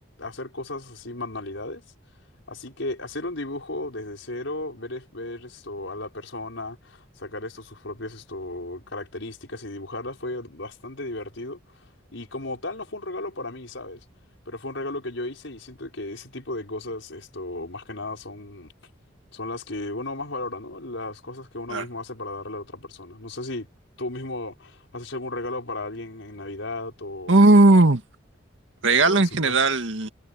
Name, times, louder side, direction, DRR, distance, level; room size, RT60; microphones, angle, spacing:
voice 1, 0.0-1.8 2.5-14.0 14.4-18.7 19.3-23.7 24.0-27.3 29.0-29.7, left 2 dB, 75° left, 5.0 m, -35 dB
voice 2, 27.3-28.0 28.8-30.1, right 2 dB, 75° right, 2.0 m, -17 dB
head